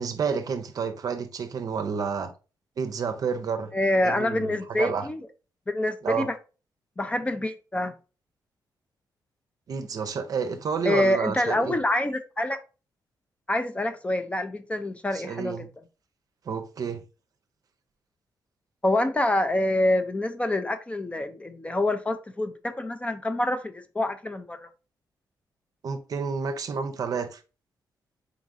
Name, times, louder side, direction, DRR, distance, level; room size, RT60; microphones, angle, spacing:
voice 1, 0.0-2.3 2.8-3.7 4.0-5.1 6.0-6.3 9.7-11.8 15.1-15.7 16.5-17.0 25.8-27.4, right 6 dB, 55° right, 0.6 m, -30 dB
voice 2, 3.7-5.2 5.7-6.3 7.0-7.9 10.8-12.6 13.5-15.7 18.8-24.7, left 1 dB, 15° left, 0.4 m, -26 dB
4.0 x 3.6 x 2.6 m
cardioid pair, 115°, 8 cm